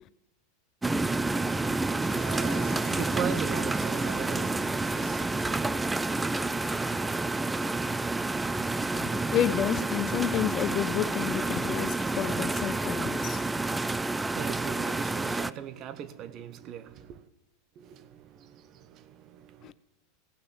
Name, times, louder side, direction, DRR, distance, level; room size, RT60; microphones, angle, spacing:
sound 1, 0.8-15.5, right 2 dB, 10° right, 0.4 m, -29 dB
sound 2, 2.0-10.1 11.4-11.7, right 8 dB, 60° right, 2.3 m, -49 dB
voice 1, 2.7-5.6 14.2-17.3 17.8-19.7, right 9 dB, 45° right, 0.9 m, -39 dB
voice 2, 8.8-13.4 19.6-19.7, left 11 dB, 40° left, 0.5 m, -30 dB
17.0 x 6.5 x 7.1 m
hypercardioid pair, 115°, 0 cm